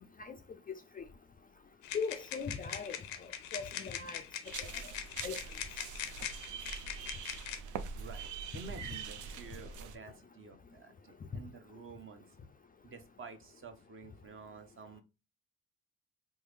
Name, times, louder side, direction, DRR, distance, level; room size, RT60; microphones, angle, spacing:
sound 1, 1.8-7.6, left 9 dB, 90° left, 0.5 m, -42 dB
voice 1, 1.9-3.0 3.2-4.2 4.6-4.7 5.2-5.4, left 5 dB, 25° left, 0.4 m, -39 dB
sound 2, 4.4-9.9, right 6 dB, 60° right, 0.5 m, -44 dB
voice 2, 8.5-12.4 12.8-15.0, right 5 dB, 35° right, 0.8 m, -50 dB
3.5 x 2.1 x 3.3 m
supercardioid pair, 65°, 35 cm